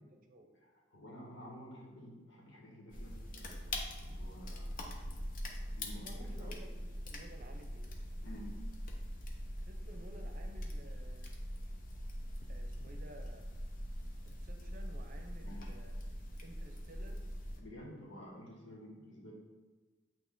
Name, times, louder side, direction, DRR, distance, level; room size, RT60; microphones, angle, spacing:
voice 1, 0.0-0.5 5.9-7.9 9.6-11.2 12.5-13.5 14.2-15.9 16.4-17.3, right 1 dB, 50° right, 4 dB, 0.7 m, -55 dB
voice 2, 0.6-4.8 5.6-6.6 8.2-8.6 15.4-15.7 17.6-19.3, equal, 75° left, -3 dB, 1.7 m, -51 dB
sound 1, 2.9-17.6, equal, 45° left, 0.8 m, -42 dB
8.6 x 2.9 x 3.9 m, 1.3 s
head